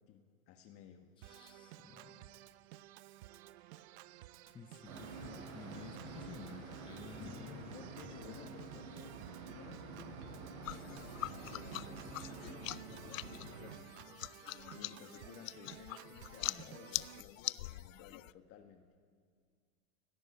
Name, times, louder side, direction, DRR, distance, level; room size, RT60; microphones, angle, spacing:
voice 1, 0.0-1.1 5.7-6.5 7.1-14.1 14.7-18.9, left 9 dB, 35° left, 5 dB, 1.6 m, -56 dB
voice 2, 1.2-2.6 3.6-4.1 4.5-7.9 8.2-8.5 16.5-16.7, left 6 dB, 10° left, 9 dB, 0.8 m, -54 dB
Organ, 1.2-17.2, right 15 dB, 55° right, 0.8 m, -54 dB
sound 1, 4.8-13.8, right 4 dB, 85° right, 7.8 m, -49 dB
sound 2, 10.6-18.3, left 17 dB, 75° left, 0.7 m, -44 dB
28.5 x 18.0 x 9.8 m, 2.1 s
supercardioid pair, 145°, 41 cm